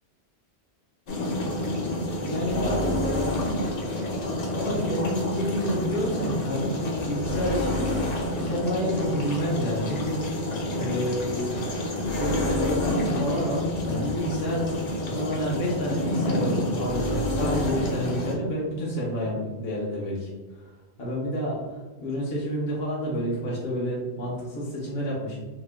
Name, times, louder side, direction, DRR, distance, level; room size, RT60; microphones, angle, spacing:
sound 1, 1.1-18.3, left 1 dB, 50° left, 0.5 m, -28 dB
voice 1, 2.0-3.2 4.5-6.7 7.1-10.2 10.8-11.5 12.1-20.3 20.6-20.7 21.0-25.4, equal, 65° left, -5 dB, 1.0 m, -29 dB
2.9 x 2.1 x 3.3 m, 1.3 s
omnidirectional pair, 1.1 m